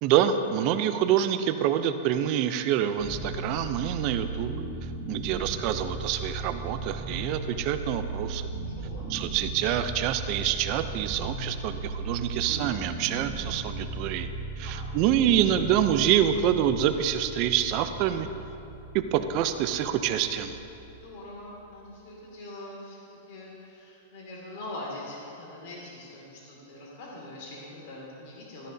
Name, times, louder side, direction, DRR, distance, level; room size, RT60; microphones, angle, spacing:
voice 1, 0.0-4.5 5.1-8.4 9.1-14.3 14.6-18.3 18.9-20.6, right 10 dB, 40° right, 9 dB, 0.5 m, -26 dB
sound 1, 2.9-22.0, right 3 dB, 20° right, 1.2 m, -37 dB
voice 2, 8.8-9.1 14.6-14.9 20.9-28.7, left 1 dB, 55° left, -3 dB, 2.3 m, -43 dB
13.5 x 10.0 x 2.8 m, 2.8 s
supercardioid pair, 155°, 0 cm